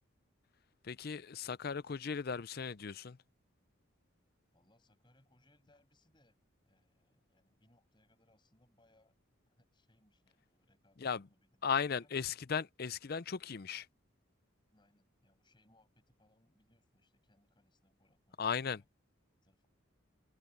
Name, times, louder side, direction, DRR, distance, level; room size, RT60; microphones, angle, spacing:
voice 1, 0.8-3.2 11.0-11.3 11.6-13.9 18.4-18.8, left 6 dB, 45° left, 0.5 m, -36 dB
voice 2, 4.5-9.2 9.5-12.2 14.7-18.8 19.4-19.7, left 1 dB, 20° left, 6.7 m, -72 dB
head